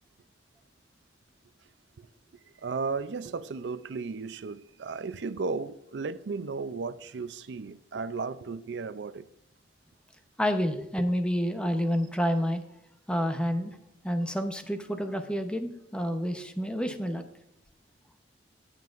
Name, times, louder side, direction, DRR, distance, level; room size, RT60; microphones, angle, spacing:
voice 1, 2.6-9.3, right 4 dB, 80° right, 0.5 m, -35 dB
voice 2, 10.4-12.6 13.1-13.8 14.0-17.2, equal, 5° left, 0.8 m, -29 dB
18.5 x 7.5 x 2.5 m
head